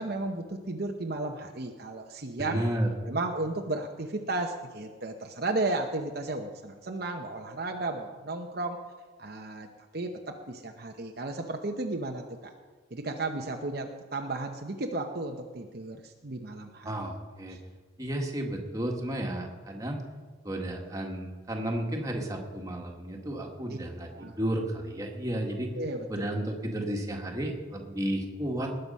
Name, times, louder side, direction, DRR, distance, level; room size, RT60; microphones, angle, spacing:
voice 1, 0.0-2.6 3.0-8.8 9.2-9.7 9.9-12.5 12.9-17.1 17.5-17.6 24.1-24.4 25.7-26.1, right 2 dB, 50° right, 3 dB, 0.9 m, -34 dB
voice 2, 2.4-2.9 16.8-17.6 18.0-20.0 20.4-25.7 26.1-28.8, right 1 dB, 15° right, 1 dB, 1.7 m, -32 dB
19.5 x 7.9 x 5.5 m, 1.5 s
head